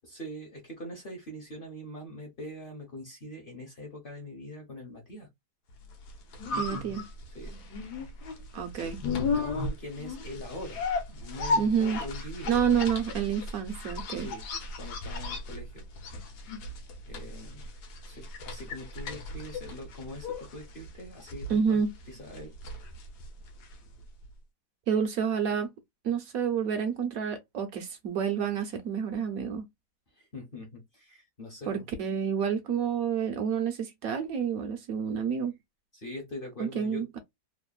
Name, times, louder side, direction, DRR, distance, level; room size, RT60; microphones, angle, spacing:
voice 1, 0.0-5.3 7.3-7.5 8.7-8.9 9.2-12.7 14.1-14.4 14.8-15.9 17.1-17.7 18.1-22.5 30.1-31.8 35.9-37.1, left 1 dB, 45° left, 0.8 m, -43 dB
sound 1, 5.9-23.9 24.2-24.3, left 3 dB, 75° left, 1.3 m, -35 dB
voice 2, 6.6-7.1 8.5-9.0 11.6-12.0 12.5-14.3 21.5-21.9 24.9-25.7 26.0-29.7 31.7-35.6 36.6-37.2, right 7 dB, 65° right, 1.0 m, -29 dB
3.1 x 2.1 x 2.3 m
omnidirectional pair, 1.8 m